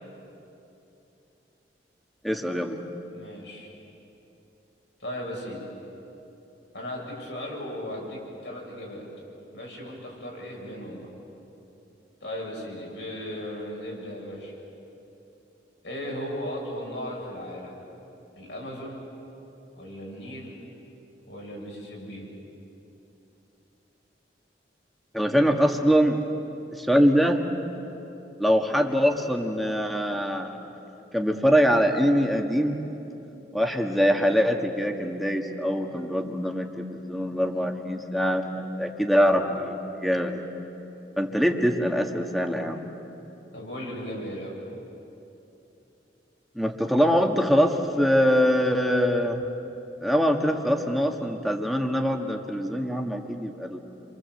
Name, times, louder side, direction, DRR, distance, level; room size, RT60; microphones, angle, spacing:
voice 1, 2.2-2.8 25.1-26.2 26.7-27.4 28.4-30.5 31.1-32.8 33.5-39.7 40.0-40.4 41.2-42.8 46.6-49.4 50.0-53.8, equal, ahead, 3 dB, 1.7 m, -23 dB
voice 2, 3.1-3.7 5.0-5.6 6.7-9.1 9.5-11.1 12.2-14.5 15.8-17.8 18.4-19.0 19.8-20.5 21.3-22.2 43.5-44.6, equal, 75° left, -2 dB, 7.5 m, -36 dB
29.5 x 24.5 x 8.0 m, 3.0 s
head